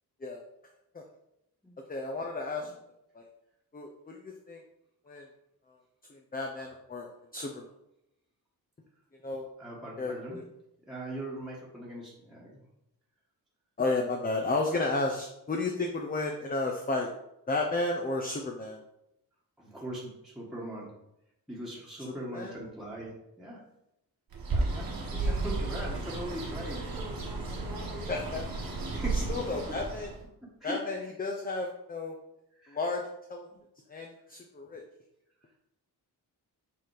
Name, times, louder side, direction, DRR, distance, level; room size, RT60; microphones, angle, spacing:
voice 1, 1.9-2.7 3.1-3.3 3.7-4.6 5.1-5.3 5.7-5.8 6.1-7.7 9.2-9.5 10.0-10.4 13.8-17.1 17.5-18.8 22.3-22.5 25.1-25.4 28.1-28.4 28.9-30.1 30.6-32.1 32.7-33.0 33.3-33.5 33.9-34.8, left 3 dB, 25° left, 1 dB, 0.6 m, -33 dB
voice 2, 9.6-10.4 10.9-12.6 19.6-20.9 21.5-23.6 24.5-26.9 28.9-29.4 29.7-29.8 30.4-30.8 32.6-32.8, right 1 dB, ahead, -6 dB, 1.4 m, -40 dB
Bird, 24.3-30.2, right 3 dB, 65° right, 1.5 m, -33 dB
6.9 x 3.9 x 4.8 m, 0.83 s
wide cardioid pair, 165°, 38 cm